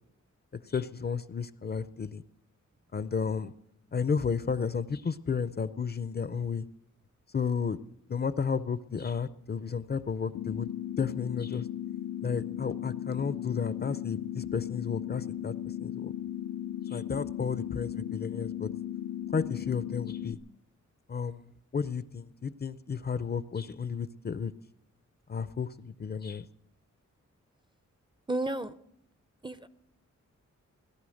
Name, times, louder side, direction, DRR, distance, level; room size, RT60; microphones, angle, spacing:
voice 1, 0.7-2.2 2.9-3.5 3.9-6.7 7.3-7.8 8.1-10.7 11.0-11.7 12.2-15.5 15.8-16.1 16.9-18.7 19.3-20.4 21.1-21.4 21.7-24.5 25.3-26.4, left 6 dB, 35° left, 14 dB, 0.5 m, -32 dB
sound 1, 10.3-20.3, left 11 dB, 75° left, 0.6 m, -36 dB
voice 2, 28.3-28.7 29.4-29.7, right 2 dB, 15° right, 13 dB, 0.5 m, -32 dB
17.5 x 11.5 x 6.4 m, 0.75 s
wide cardioid pair, 140°, 30 cm